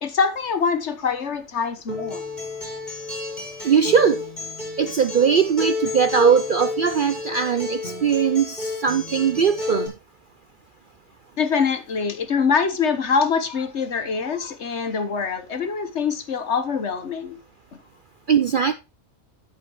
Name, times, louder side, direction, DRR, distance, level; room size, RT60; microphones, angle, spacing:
voice 1, 0.0-2.2 11.4-17.4, left 5 dB, 55° left, 1.5 m, -24 dB
Acoustic guitar, 1.9-9.9, left 3 dB, 30° left, 4.7 m, -31 dB
voice 2, 3.6-4.2 4.8-9.9 18.3-18.7, right 7 dB, 55° right, 0.6 m, -20 dB
10.5 x 8.4 x 3.1 m
omnidirectional pair, 1.4 m